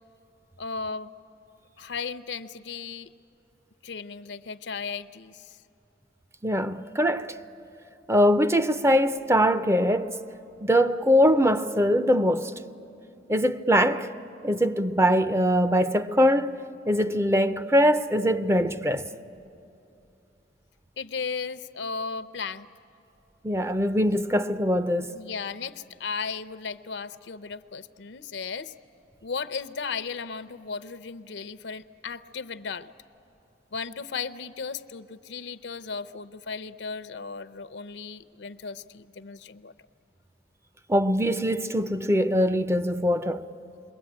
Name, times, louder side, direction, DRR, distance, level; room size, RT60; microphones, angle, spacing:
voice 1, 0.6-1.1 1.8-3.1 3.8-5.6 21.0-22.7 25.1-28.7 29.2-32.9 33.7-39.7, left 5 dB, 75° left, 0.6 m, -35 dB
voice 2, 6.4-7.4 8.1-10.2 10.6-12.5 13.3-14.1 14.4-16.6 16.9-19.1 23.4-25.1 40.9-43.4, equal, 15° right, 0.6 m, -22 dB
29.0 x 22.0 x 8.7 m
head